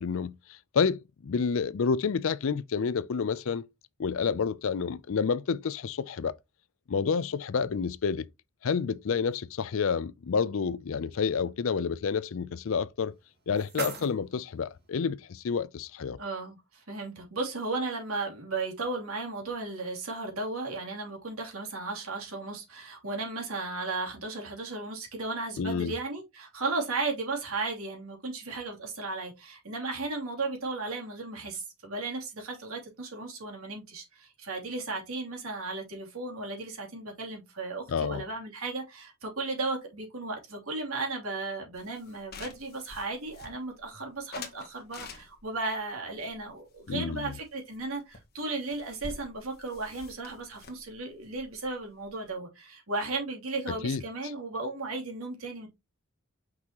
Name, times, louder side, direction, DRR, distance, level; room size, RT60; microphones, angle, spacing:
voice 1, 0.0-3.6 4.0-6.3 6.9-8.2 8.6-13.1 13.5-16.2 25.6-25.9 37.9-38.2 46.9-47.3 53.7-54.0, left 5 dB, 65° left, 0.4 m, -29 dB
sound 1, 13.0-15.0, right 3 dB, 45° right, 2.4 m, -41 dB
voice 2, 16.2-55.7, right 3 dB, 75° right, 3.0 m, -35 dB
sound 2, 41.8-43.9 44.3-45.6 46.2-47.4 47.7-47.9 48.1-48.2 48.4-52.3, left 3 dB, 45° left, 1.4 m, -47 dB
6.1 x 5.9 x 2.9 m
head